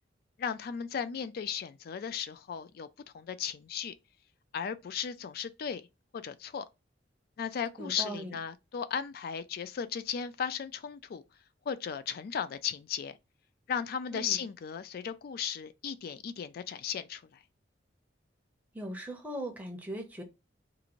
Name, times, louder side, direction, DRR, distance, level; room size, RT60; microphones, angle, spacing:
voice 1, 0.4-2.9 3.1-3.9 4.5-5.8 6.1-6.6 7.4-11.2 11.7-13.2 13.7-17.4, left 7 dB, 55° left, 0.3 m, -36 dB
voice 2, 7.8-8.4 14.1-14.4 18.7-20.2, right 1 dB, 10° right, 0.6 m, -39 dB
2.6 x 2.5 x 2.9 m
head